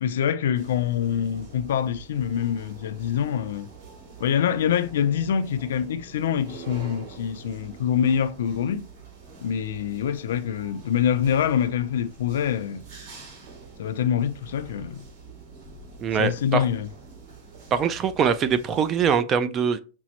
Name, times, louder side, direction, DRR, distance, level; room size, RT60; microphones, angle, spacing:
voice 1, 0.0-3.7 4.2-8.9 9.4-12.8 13.8-15.1 16.2-16.9, left 9 dB, 85° left, 0.4 m, -25 dB
sound 1, 0.5-19.2, right 4 dB, 50° right, 2.2 m, -45 dB
voice 2, 16.0-16.6 17.7-19.8, right 7 dB, 25° right, 0.4 m, -23 dB
6.0 x 2.0 x 2.9 m
supercardioid pair, 150°, 0 cm